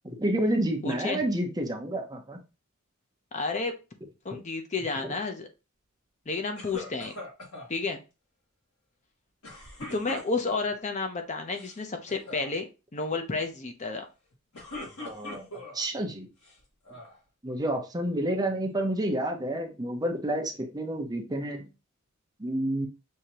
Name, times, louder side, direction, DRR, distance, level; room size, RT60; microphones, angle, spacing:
voice 1, 0.0-2.4 5.0-5.1 15.0-15.5 15.7-16.3 17.4-21.7 22.4-22.9, right 1 dB, 20° right, 3 dB, 0.7 m, -29 dB
voice 2, 0.8-1.2 3.3-3.7 4.2-5.5 6.3-7.1 7.7-8.0 9.9-14.1, left 3 dB, 35° left, 6 dB, 0.6 m, -31 dB
sound 1, 6.6-7.7 9.4-10.7 11.4-11.8 12.1-12.5 14.3-15.8 16.4-17.2, left 2 dB, 75° left, 1.8 m, -42 dB
6.4 x 2.8 x 2.8 m, 0.29 s
head